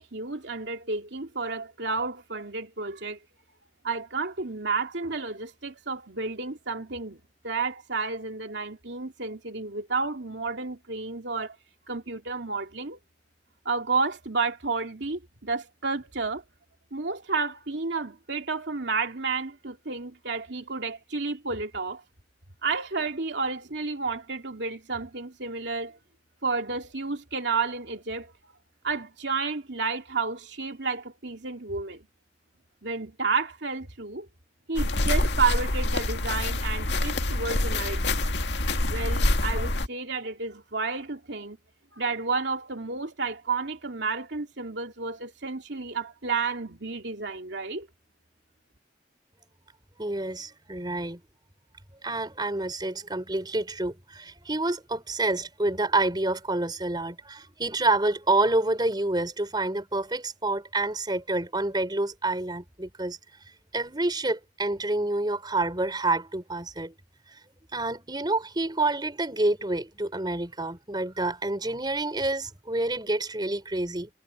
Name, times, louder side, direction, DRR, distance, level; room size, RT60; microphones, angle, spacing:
voice 1, 0.0-3.2 3.8-11.6 11.9-13.0 13.6-16.4 16.9-22.0 22.6-26.0 26.4-28.3 28.8-32.1 32.8-34.3 34.7-38.2 38.9-41.6 41.9-47.9, right 4 dB, 70° right, 2.7 m, -31 dB
sound 1, 34.8-39.9, left 2 dB, 70° left, 2.0 m, -26 dB
voice 2, 50.0-51.2 52.0-63.2 63.7-66.9 67.7-74.1, right 2 dB, 25° right, 4.1 m, -28 dB
head